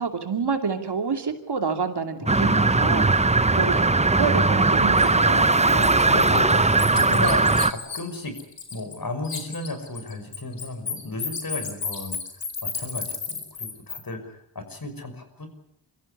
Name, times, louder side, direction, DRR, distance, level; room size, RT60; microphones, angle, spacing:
voice 1, 0.0-3.1 3.5-6.1, right 5 dB, 65° right, 6 dB, 2.7 m, -28 dB
voice 2, 2.2-2.9 5.2-8.3 8.7-15.5, left 2 dB, 50° left, 7 dB, 5.8 m, -34 dB
sound 1, 2.3-7.7, right 3 dB, 15° right, 0.9 m, -19 dB
Bird, 5.0-5.1 5.5-9.0 9.2-14.0, left 6 dB, 75° left, 4.4 m, -33 dB
24.0 x 14.5 x 9.8 m, 0.75 s
cardioid pair, 50°, 43 cm